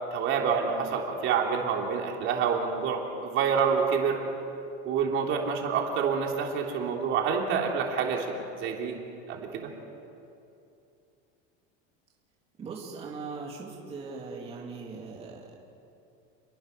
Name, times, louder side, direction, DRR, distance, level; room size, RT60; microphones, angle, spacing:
voice 1, 0.1-4.2 4.8-9.0 9.3-9.7, right 6 dB, 40° right, 0 dB, 3.3 m, -27 dB
voice 2, 12.6-15.6, right 4 dB, 20° right, -4 dB, 3.0 m, -40 dB
29.5 x 22.0 x 6.8 m, 2.6 s
cardioid pair, 165°, 31 cm